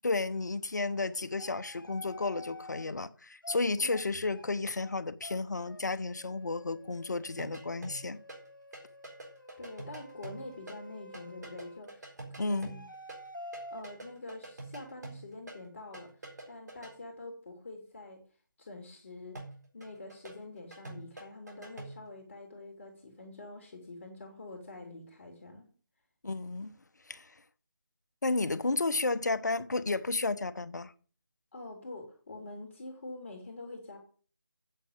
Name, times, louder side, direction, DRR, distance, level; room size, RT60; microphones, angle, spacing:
voice 1, 0.0-8.2 12.4-12.7 26.2-26.7 27.1-27.3 28.2-30.9, left 3 dB, 55° left, 0.9 m, -32 dB
sound 1, 1.4-2.8 3.4-3.6 3.9-4.1 4.3-4.5 4.8-4.9 5.2-5.4 5.7-5.8 6.1-11.8 12.5-13.8, left 1 dB, 75° left, 1.7 m, -49 dB
sound 2, 7.4-8.5 8.7-13.3 13.5-16.9 19.3-22.1, right 2 dB, 55° right, 4.1 m, -46 dB
voice 2, 9.6-12.8 13.7-16.1 16.5-18.2 18.6-19.4 19.7-25.7 31.5-34.0, left 2 dB, 35° left, 2.4 m, -46 dB
8.9 x 6.2 x 8.3 m
figure-of-eight pair, 160°, 11 cm